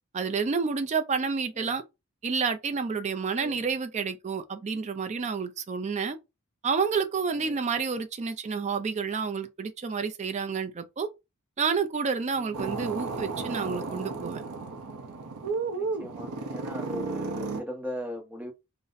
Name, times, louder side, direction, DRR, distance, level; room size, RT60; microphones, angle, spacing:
voice 1, 0.1-1.8 2.2-6.2 6.6-11.1 11.6-14.4, right 5 dB, 30° right, 0.4 m, -29 dB
voice 2, 3.4-3.7 7.3-7.7 12.3-12.8 15.7-18.5, left 1 dB, 5° right, 0.8 m, -39 dB
sound 1, 12.5-17.6, right 4 dB, 75° right, 0.6 m, -33 dB
3.9 x 2.0 x 2.5 m
head